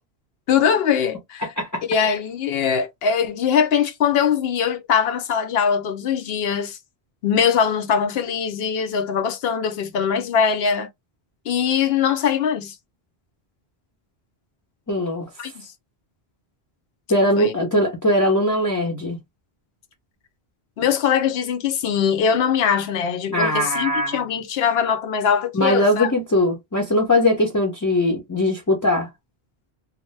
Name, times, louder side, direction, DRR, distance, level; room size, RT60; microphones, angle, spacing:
voice 1, 0.5-1.5 1.9-6.8 7.2-10.9 11.5-12.8 15.4-15.7 17.4-17.5 20.8-26.1, left 7 dB, 70° left, 0.8 m, -21 dB
voice 2, 1.4-1.8 14.9-15.3 17.1-19.2 23.3-24.2 25.5-29.1, left 1 dB, 20° left, 0.6 m, -20 dB
2.7 x 2.1 x 3.2 m
omnidirectional pair, 1.1 m